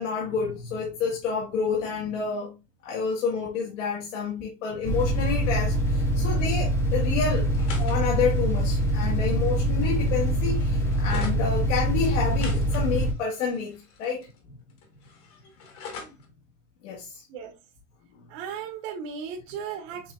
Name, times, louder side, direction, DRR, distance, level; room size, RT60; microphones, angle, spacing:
voice 1, 0.0-2.5 2.8-7.5 7.8-14.6 16.8-17.2, left 5 dB, 70° left, 1.6 m, -29 dB
sound 1, 4.8-13.1, right 1 dB, 5° left, 0.7 m, -24 dB
sound 2, 7.4-11.4 12.0-14.4 14.7-16.3, left 5 dB, 35° left, 1.3 m, -44 dB
voice 2, 18.3-20.1, right 7 dB, 50° right, 1.0 m, -36 dB
7.0 x 3.3 x 2.3 m
supercardioid pair, 165°, 39 cm